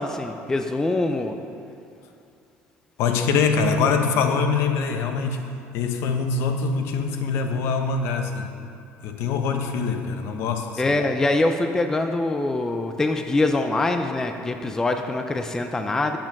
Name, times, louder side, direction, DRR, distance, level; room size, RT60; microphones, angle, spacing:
voice 1, 0.0-1.4 10.8-16.2, left 2 dB, 10° left, 6 dB, 0.4 m, -24 dB
voice 2, 3.0-5.5 5.7-8.5 9.0-11.0, left 5 dB, 65° left, 5 dB, 0.9 m, -24 dB
9.5 x 7.5 x 6.0 m, 2.5 s
cardioid pair, 150°, 5 cm